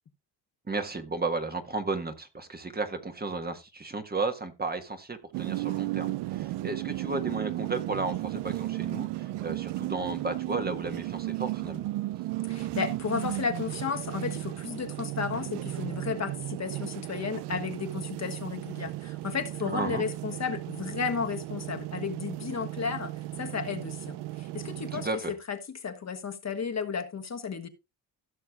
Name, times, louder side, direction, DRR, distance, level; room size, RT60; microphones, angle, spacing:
voice 1, 0.7-11.9 19.6-20.0 24.9-25.3, right 3 dB, 25° right, 1.4 m, -33 dB
sound 1, 5.3-25.1, right 17 dB, 85° right, 0.5 m, -35 dB
voice 2, 12.5-23.1 23.4-27.7, left 6 dB, 40° left, 1.4 m, -33 dB
16.5 x 6.5 x 2.4 m
cardioid pair, 95°, 40 cm